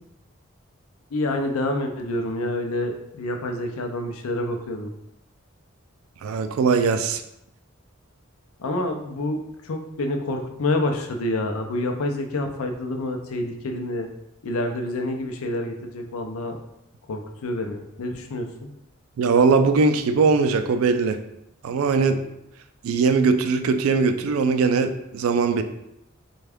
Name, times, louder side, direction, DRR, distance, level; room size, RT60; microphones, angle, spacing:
voice 1, 1.1-4.9 8.6-14.1 14.4-16.6 17.1-18.7, left 1 dB, 85° left, 4 dB, 0.5 m, -28 dB
voice 2, 6.2-7.2 19.2-21.2 21.6-22.2 22.8-25.6, right 4 dB, 80° right, 9 dB, 0.3 m, -20 dB
3.4 x 2.3 x 3.4 m, 0.83 s
head